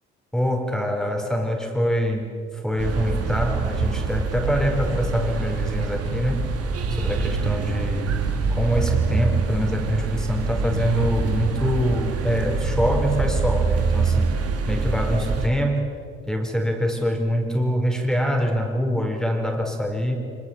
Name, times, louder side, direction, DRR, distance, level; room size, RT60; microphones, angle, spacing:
voice 1, 0.3-6.5 6.9-8.2 8.5-14.4 14.7-16.0 16.3-20.2, equal, ahead, 2 dB, 4.9 m, -24 dB
sound 1, 2.8-15.5, right 4 dB, 55° right, 3.0 m, -25 dB
25.0 x 24.0 x 7.5 m, 2.4 s
hypercardioid pair, 50°, 29 cm